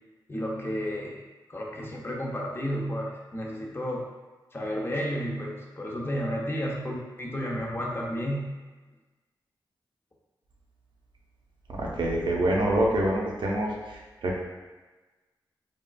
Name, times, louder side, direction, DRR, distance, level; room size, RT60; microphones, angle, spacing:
voice 1, 0.3-1.2 1.5-4.1 4.5-8.5, equal, 30° left, -2 dB, 0.6 m, -32 dB
voice 2, 11.8-14.4, right 1 dB, 70° right, -2 dB, 0.6 m, -26 dB
3.5 x 2.3 x 2.3 m, 1.2 s
cardioid pair, 55°, 8 cm